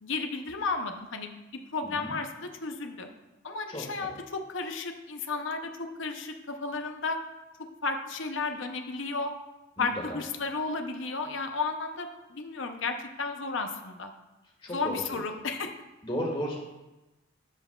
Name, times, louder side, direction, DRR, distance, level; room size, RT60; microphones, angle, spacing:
voice 1, 0.0-1.3 1.7-3.1 3.4-7.2 7.8-9.3 9.8-14.1 14.7-15.7, left 4 dB, 70° left, 5 dB, 0.7 m, -33 dB
voice 2, 1.8-2.1 3.7-4.1 9.8-10.2 14.6-15.2 16.0-16.6, equal, 25° left, -1 dB, 1.6 m, -35 dB
12.5 x 5.8 x 2.3 m, 1.0 s
head